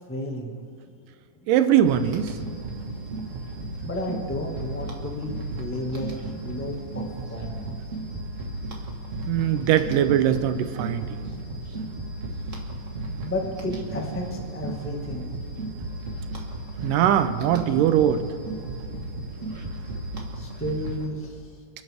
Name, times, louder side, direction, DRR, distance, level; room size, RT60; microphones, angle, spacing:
voice 1, 0.1-0.6 3.8-6.1 6.4-7.0 7.3-7.8 13.2-15.3 20.3-21.4, left 1 dB, 10° left, 0 dB, 0.5 m, -32 dB
voice 2, 1.5-2.4 9.3-11.3 16.8-18.2, right 10 dB, 85° right, 10 dB, 2.3 m, -21 dB
sound 1, 1.8-21.1, right 2 dB, 40° right, 1.1 m, -34 dB
30.0 x 10.5 x 3.5 m, 2.2 s
omnidirectional pair, 3.7 m